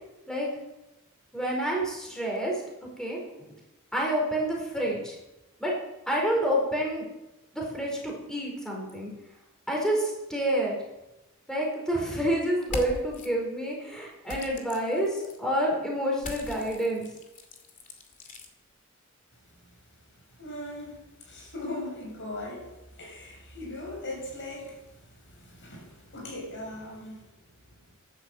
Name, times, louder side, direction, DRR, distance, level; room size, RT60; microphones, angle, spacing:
voice 1, 1.3-2.6 3.0-3.5 3.9-5.1 5.6-5.7 6.1-7.0 7.5-9.1 9.7-10.8 11.5-17.1, right 1 dB, 5° left, -2 dB, 4.6 m, -28 dB
sound 1, 12.6-13.3 14.3-15.4 16.2-18.5, left 2 dB, 40° left, 2.4 m, -40 dB
voice 2, 20.4-27.3 27.6-27.9, left 1 dB, 60° left, 0 dB, 6.4 m, -40 dB
13.5 x 12.0 x 7.9 m, 0.97 s
head